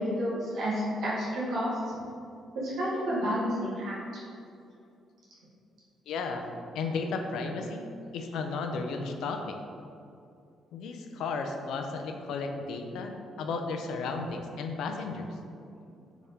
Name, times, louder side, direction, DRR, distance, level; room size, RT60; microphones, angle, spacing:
voice 1, 0.0-2.0 2.5-4.2, equal, 75° right, -7 dB, 1.1 m, -30 dB
voice 2, 6.1-6.5 6.7-7.9 8.1-9.6 10.7-15.4, left 4 dB, 80° left, 4 dB, 0.4 m, -34 dB
3.6 x 3.5 x 4.1 m, 2.5 s
cardioid pair, 90°, 0 cm